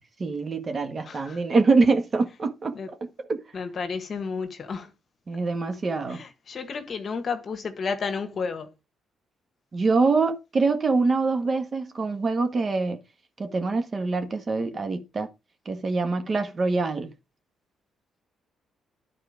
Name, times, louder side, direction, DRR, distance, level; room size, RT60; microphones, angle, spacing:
voice 1, 0.2-2.7 3.3-3.4 5.3-6.2 9.7-13.0 13.4-15.3 15.6-17.1, right 3 dB, 40° right, 1.5 m, -24 dB
voice 2, 1.0-1.4 2.7-2.9 3.5-4.9 6.1-8.7, left 5 dB, 45° left, 1.5 m, -32 dB
10.5 x 4.3 x 5.1 m
cardioid pair, 90°, 0 cm